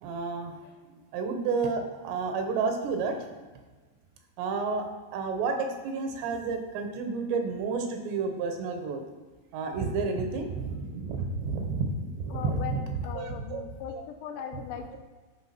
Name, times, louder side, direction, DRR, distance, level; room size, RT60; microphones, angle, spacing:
voice 1, 0.0-0.5 1.1-3.2 4.4-4.9 5.1-9.0 9.5-13.6 13.9-14.0, right 4 dB, 85° right, 4 dB, 3.2 m, -30 dB
voice 2, 12.3-15.0, left 7 dB, 85° left, 4 dB, 2.9 m, -39 dB
10.5 x 4.2 x 5.8 m, 1.3 s
omnidirectional pair, 4.9 m